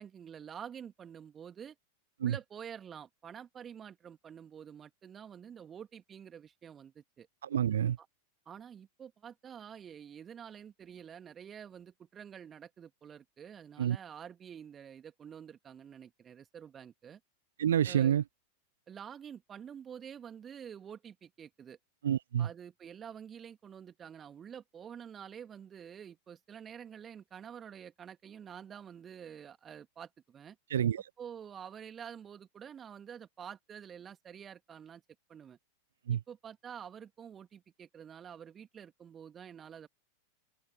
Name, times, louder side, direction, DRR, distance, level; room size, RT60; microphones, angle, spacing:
voice 1, 0.0-1.7 2.2-7.3 8.0-8.1 8.5-17.2 17.8-18.2 18.9-21.8 22.4-30.6 31.2-35.0 35.3-35.6 36.1-39.9, right 8 dB, 25° right, 2.7 m, -48 dB
voice 2, 7.4-8.0 13.8-14.0 17.6-18.2 22.0-22.5 30.7-31.1 36.1-36.2, right 9 dB, 65° right, 0.9 m, -28 dB
figure-of-eight pair, 90°, 0 cm